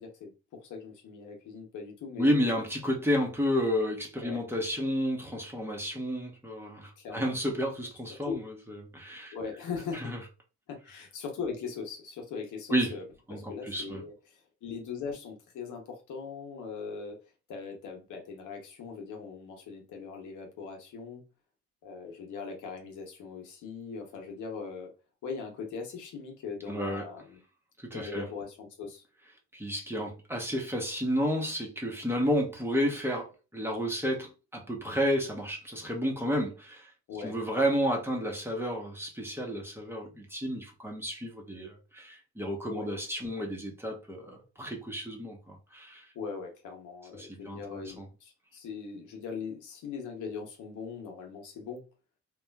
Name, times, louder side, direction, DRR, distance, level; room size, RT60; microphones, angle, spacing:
voice 1, 0.0-2.5 4.2-4.4 7.0-7.3 8.1-8.5 9.3-10.1 10.7-13.0 13.3-17.2 17.5-21.2 21.8-24.9 25.2-27.4 27.9-29.0 37.1-37.4 42.7-42.9 46.1-51.8, left 5 dB, 80° left, 0.9 m, -40 dB
voice 2, 2.2-9.3 10.0-10.2 12.7-12.9 13.3-14.0 26.7-27.0 27.8-28.2 29.5-36.9 37.2-46.0 47.2-48.0, equal, 10° right, 0.8 m, -31 dB
3.0 x 2.3 x 2.2 m
cardioid pair, 90°, 30 cm